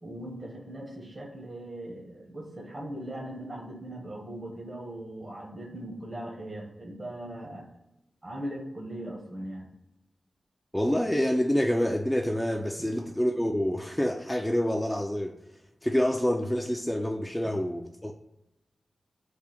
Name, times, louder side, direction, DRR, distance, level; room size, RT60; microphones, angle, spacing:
voice 1, 0.0-7.7 8.2-9.7, right 1 dB, 35° right, -2 dB, 0.9 m, -39 dB
voice 2, 10.7-15.4 15.8-18.1, equal, 10° left, 3 dB, 0.3 m, -27 dB
3.4 x 2.2 x 4.3 m, 0.90 s
cardioid pair, 60°, 0 cm